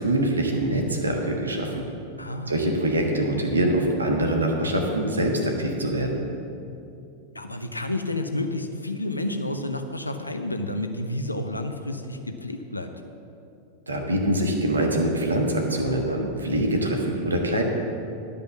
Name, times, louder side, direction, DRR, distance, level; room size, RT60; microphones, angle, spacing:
voice 1, 0.0-1.7 2.5-6.2 13.9-17.6, right 1 dB, 75° right, 2 dB, 1.3 m, -24 dB
voice 2, 2.2-2.5 7.3-12.9, left 1 dB, 85° left, 6 dB, 0.7 m, -30 dB
11.0 x 5.3 x 7.1 m, 2.6 s
figure-of-eight pair, 90°, 0 cm